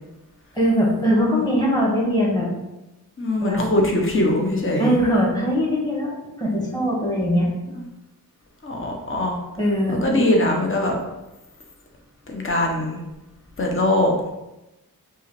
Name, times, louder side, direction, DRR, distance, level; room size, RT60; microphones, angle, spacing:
voice 1, 0.5-2.5 3.4-3.7 4.8-7.5 9.6-10.2, equal, 10° left, -5 dB, 1.4 m, -21 dB
voice 2, 3.2-4.9 8.6-9.4 10.0-10.9 12.3-13.0 13.6-14.3, left 1 dB, 35° left, 1 dB, 0.8 m, -21 dB
5.4 x 2.5 x 3.2 m, 0.99 s
wide cardioid pair, 95°, 38 cm